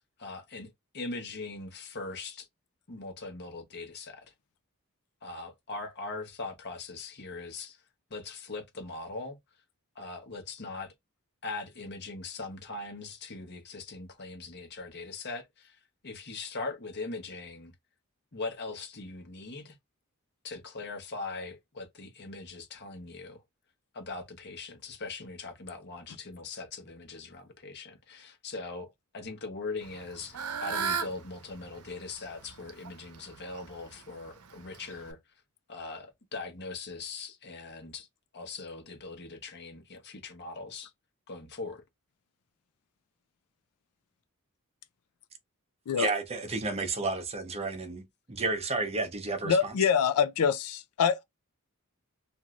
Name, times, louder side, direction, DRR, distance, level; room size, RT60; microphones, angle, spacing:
voice 1, 0.0-2.5 2.9-4.3 5.2-7.8 8.1-9.4 9.9-10.9 11.4-17.7 18.3-19.8 20.4-23.4 23.9-35.2 35.7-38.1 38.3-40.9 41.3-41.8, left 3 dB, 50° left, 1.0 m, -41 dB
Fowl / Bird, 29.8-35.1, right 6 dB, 80° right, 0.7 m, -38 dB
voice 2, 46.0-49.6, right 3 dB, 30° right, 0.7 m, -31 dB
voice 3, 49.4-51.2, left 7 dB, 80° left, 0.4 m, -25 dB
3.1 x 2.6 x 2.4 m
head